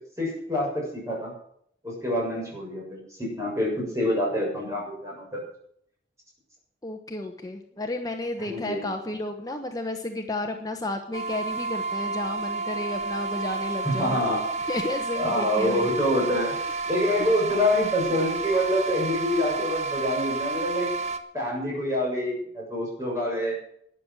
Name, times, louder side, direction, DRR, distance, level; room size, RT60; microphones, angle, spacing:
voice 1, 0.2-1.3 1.8-5.4 8.5-8.9 13.8-14.4 15.2-16.5 16.9-20.9 21.3-23.6, left 1 dB, 15° right, -3 dB, 7.2 m, -26 dB
voice 2, 6.8-14.2 14.7-15.9, left 2 dB, 20° left, 4 dB, 1.1 m, -32 dB
sound 1, 11.1-21.2, right 4 dB, 40° right, 1.2 m, -31 dB
13.0 x 9.8 x 7.6 m, 0.67 s
head